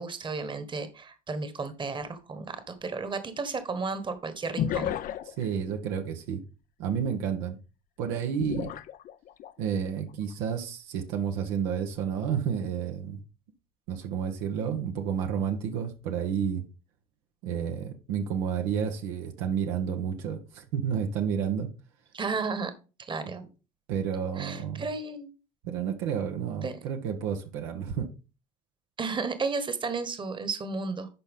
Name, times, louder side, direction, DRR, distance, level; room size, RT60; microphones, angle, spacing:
voice 1, 0.0-4.9 22.1-22.7 23.0-23.4 24.4-25.3 26.6-26.8 29.0-31.1, right 4 dB, 25° right, 1.4 m, -33 dB
sound 1, 1.7-1.8 4.6-5.5 8.4-9.5 10.1-10.3, left 11 dB, 50° left, 0.6 m, -32 dB
voice 2, 5.3-6.4 6.8-7.6 8.0-8.7 9.6-13.2 13.9-16.6 17.4-21.7 23.9-24.8 25.6-28.1, right 7 dB, 80° right, 1.3 m, -30 dB
11.5 x 4.4 x 3.7 m
supercardioid pair, 85°, 18 cm